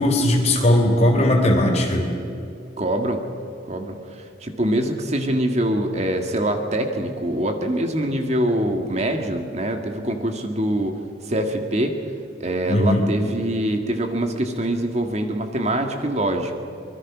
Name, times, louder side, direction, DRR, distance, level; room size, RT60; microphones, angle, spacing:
voice 1, 0.0-2.1 12.7-13.1, left 1 dB, 35° left, 2 dB, 3.9 m, -18 dB
voice 2, 2.8-3.2 3.7-11.0 11.2-12.0 12.4-16.5, right 1 dB, 40° right, 5 dB, 1.9 m, -24 dB
24.5 x 22.0 x 6.1 m, 2.6 s
head